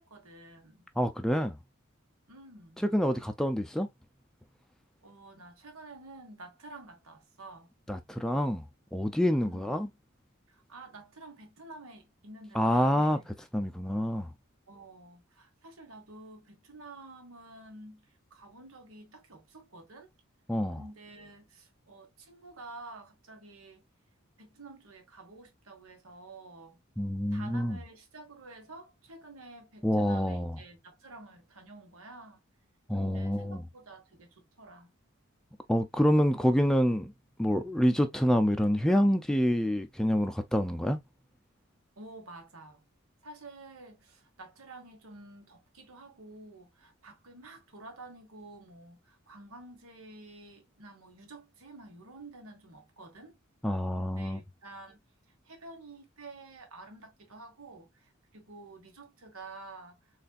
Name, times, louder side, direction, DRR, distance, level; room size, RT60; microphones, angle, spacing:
voice 1, 0.0-0.9 2.3-2.8 5.0-7.7 9.3-9.8 10.5-13.3 14.7-20.1 20.7-23.8 24.4-26.8 27.3-32.4 33.0-34.9 42.0-42.8 43.2-53.3 54.0-55.0 55.4-60.1, right 2 dB, 90° right, 1.4 m, -50 dB
voice 2, 1.0-1.6 2.8-3.9 7.9-8.6 8.9-9.9 12.5-13.2 13.5-14.3 20.5-20.8 27.0-27.8 29.8-30.6 32.9-33.6 35.7-37.1 37.4-41.0 53.6-54.4, equal, 5° left, 0.3 m, -27 dB
4.1 x 3.3 x 2.3 m
head